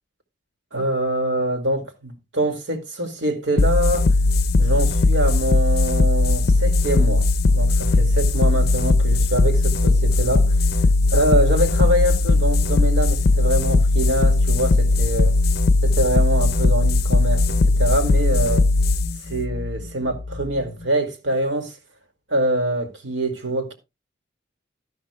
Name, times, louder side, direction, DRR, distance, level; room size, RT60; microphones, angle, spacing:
voice 1, 0.7-4.1 4.6-7.3 7.5-10.6 11.1-15.3 15.8-18.7 19.3-21.7 22.3-23.7, right 1 dB, 70° right, 2.3 m, -24 dB
sound 1, 3.6-20.6, left 2 dB, 55° left, 0.5 m, -18 dB
12.5 x 11.5 x 2.3 m
head